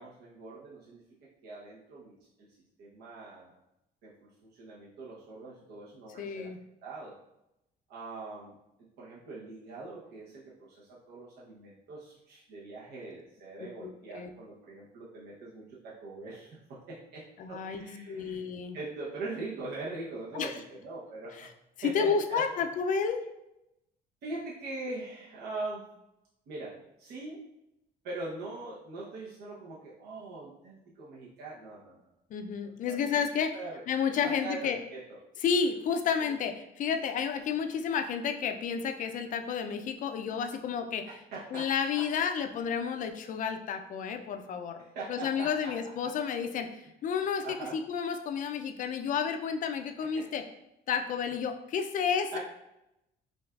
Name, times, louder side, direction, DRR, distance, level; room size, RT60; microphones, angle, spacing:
voice 1, 0.0-2.5 2.8-3.5 4.0-6.5 6.8-7.2 7.9-8.5 9.0-18.4 18.7-21.5 21.8-22.6 24.2-25.9 26.5-27.4 28.0-32.0 32.6-33.1 33.5-33.8 34.2-35.2 36.2-36.3 41.1-41.7 42.0-42.1 44.8-46.1 47.4-47.8 50.1-50.3 52.3-52.4, right 3 dB, 75° right, -6 dB, 0.8 m, -42 dB
voice 2, 6.2-6.6 13.8-14.3 17.4-18.8 20.3-20.5 21.8-23.2 32.3-33.5 33.9-34.8 35.4-41.1 41.5-44.8 45.1-46.7 47.0-47.4 47.7-50.4 50.9-52.4, left 6 dB, 50° left, 7 dB, 0.4 m, -31 dB
5.1 x 2.4 x 2.3 m, 0.87 s
cardioid pair, 110°, 17 cm